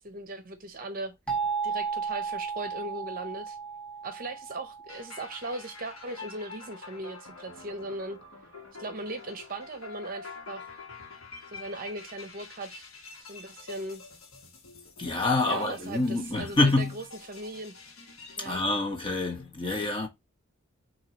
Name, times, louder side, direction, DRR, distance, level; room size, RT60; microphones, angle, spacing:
voice 1, 0.0-1.4 1.6-3.6 4.0-8.2 8.8-10.7 11.5-12.9 13.2-14.0 15.5-17.7 18.4-18.6, right 2 dB, 40° right, 0.8 m, -38 dB
sound 1, 1.3-6.0, right 5 dB, 5° left, 1.5 m, -34 dB
sound 2, 4.9-18.6, left 4 dB, 80° left, 1.5 m, -47 dB
voice 2, 15.0-16.9 18.4-20.1, left 2 dB, 25° left, 1.1 m, -26 dB
6.5 x 2.8 x 2.9 m
head